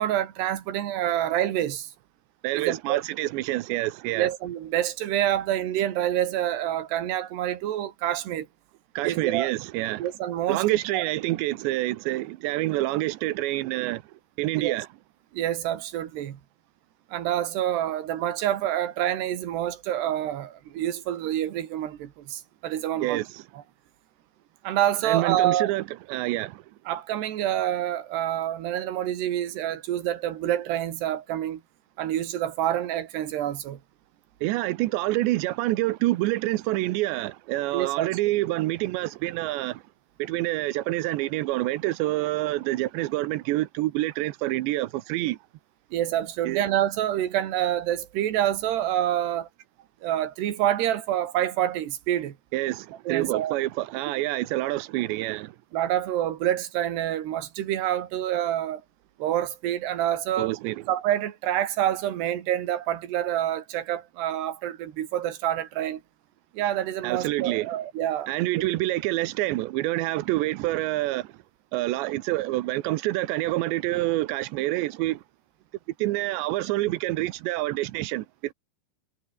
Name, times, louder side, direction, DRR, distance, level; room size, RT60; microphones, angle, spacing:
voice 1, 0.0-1.9 2.5-3.0 4.2-8.5 9.0-9.5 10.0-11.0 14.6-14.8 15.3-16.4 17.1-23.2 24.6-25.7 26.9-31.6 32.0-33.8 37.7-38.1 45.9-49.5 50.0-52.4 53.1-53.6 55.7-58.8 59.2-60.5 60.9-66.0 66.5-68.3 68.6-68.7, right 12 dB, 75° right, 4.2 m, -27 dB
voice 2, 2.4-4.3 9.0-10.1 10.5-14.0 14.4-14.9 23.0-23.4 25.0-26.6 34.4-39.8 40.2-45.4 46.4-46.6 52.5-55.6 60.4-60.8 67.0-67.7 68.3-71.4 71.7-75.2 76.0-78.5, right 17 dB, 90° right, 3.2 m, -27 dB
omnidirectional pair, 4.9 m